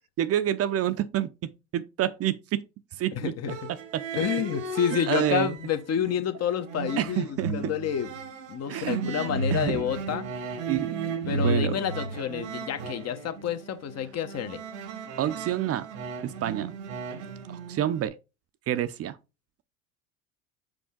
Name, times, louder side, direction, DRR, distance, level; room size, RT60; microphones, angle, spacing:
voice 1, 0.2-2.6 2.9-3.3 3.9-4.1 5.1-5.5 7.0-7.7 8.7-9.0 9.5-9.8 10.7-11.8 15.2-15.9 16.2-16.7 17.5-18.2 18.7-19.2, right 11 dB, 40° right, 0.6 m, -28 dB
voice 2, 3.2-3.7 4.1-8.1 8.5-10.3 11.3-14.6, left 8 dB, 40° left, 1.2 m, -29 dB
sound 1, 3.5-5.7 6.1-18.1, right 4 dB, 90° right, 1.3 m, -34 dB
6.3 x 5.2 x 3.7 m
hypercardioid pair, 90°, 38 cm